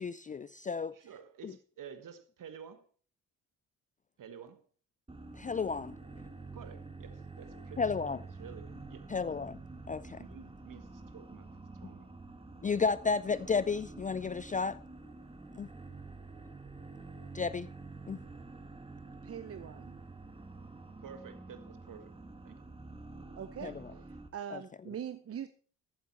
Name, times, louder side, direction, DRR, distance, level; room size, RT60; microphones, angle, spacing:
voice 1, 0.0-1.0 1.4-1.5 5.4-5.9 7.8-8.2 9.1-9.6 9.9-10.2 12.6-14.8 15.6-15.7 17.3-17.7 18.1-18.2 23.6-23.7 24.5-24.6, left 5 dB, 20° left, 0.4 m, -32 dB
voice 2, 0.9-2.9 4.2-4.6 6.5-7.9 8.4-9.1 10.2-12.1 12.6-12.7 21.0-22.1 22.4-22.6 23.6-24.0, right 7 dB, 50° right, 1.5 m, -51 dB
sound 1, 5.1-24.3, right 3 dB, 15° right, 1.6 m, -48 dB
voice 3, 19.2-20.0 23.3-23.8 24.3-25.5, right 8 dB, 35° right, 0.7 m, -42 dB
14.5 x 8.3 x 4.2 m
hypercardioid pair, 45°, 39 cm